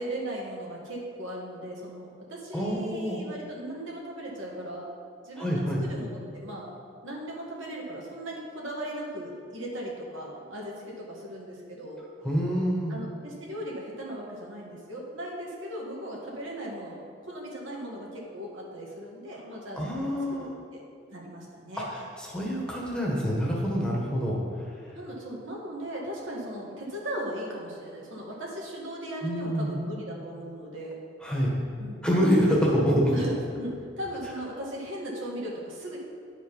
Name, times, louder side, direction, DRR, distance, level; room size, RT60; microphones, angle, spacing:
voice 1, 0.0-4.9 5.2-6.7 7.0-12.0 12.9-20.8 21.1-21.9 24.9-31.0 31.8-32.2 32.7-32.8 33.1-36.0, right 1 dB, 80° right, -3 dB, 1.8 m, -38 dB
voice 2, 2.5-3.2 5.4-5.8 12.2-12.9 19.7-20.5 21.7-24.9 29.2-29.8 31.2-31.5 32.0-33.1, equal, 5° left, -4 dB, 1.4 m, -26 dB
10.0 x 5.0 x 5.5 m, 2.2 s
head